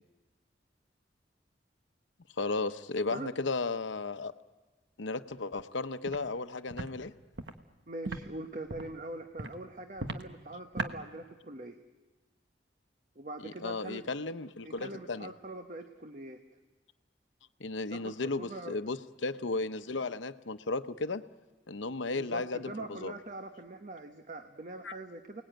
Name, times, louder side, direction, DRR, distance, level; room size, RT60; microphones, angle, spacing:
voice 1, 2.4-4.3 5.0-7.1 13.4-15.3 17.6-21.2 21.7-23.1 24.8-24.9, left 3 dB, 90° left, 11 dB, 0.9 m, -35 dB
Walk footsteps, 6.1-6.2 6.7-6.9 7.3-7.5 8.0-8.2 8.7-8.9 9.4-9.5 10.0-10.2 10.8-10.9, right 3 dB, 75° right, 1.3 m, -36 dB
voice 2, 7.9-11.8 13.2-14.1 14.6-16.4 17.9-18.7 22.1-25.4, right 1 dB, 45° right, 5 dB, 1.1 m, -43 dB
29.0 x 19.0 x 9.0 m, 1.3 s
head